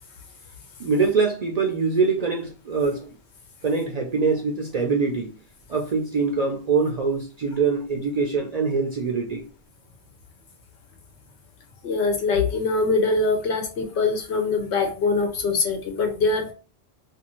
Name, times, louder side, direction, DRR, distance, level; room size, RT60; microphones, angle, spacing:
voice 1, 0.8-3.1 3.6-5.4 5.7-9.4, right 4 dB, 55° right, 0.4 m, -24 dB
voice 2, 11.8-16.5, left 3 dB, 85° left, 1.0 m, -23 dB
2.6 x 2.4 x 3.0 m
omnidirectional pair, 1.1 m